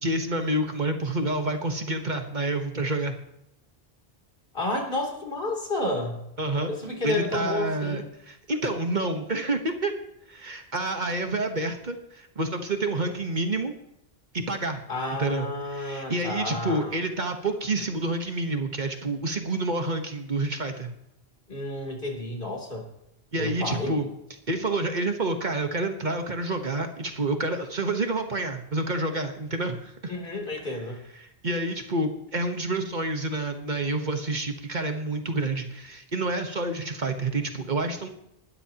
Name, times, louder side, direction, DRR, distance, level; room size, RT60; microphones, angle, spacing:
voice 1, 0.0-3.2 6.4-6.7 7.0-9.9 10.3-13.7 14.3-14.8 15.1-20.9 23.3-24.1 24.5-30.1 31.2-38.1, right 2 dB, 45° right, 6 dB, 1.3 m, -28 dB
voice 2, 4.5-6.2 6.7-8.1 12.9-13.1 14.9-17.0 21.5-22.9 23.3-24.0 30.1-31.0, left 2 dB, 55° left, 0 dB, 3.4 m, -31 dB
20.0 x 12.5 x 2.9 m, 0.79 s
omnidirectional pair, 1.1 m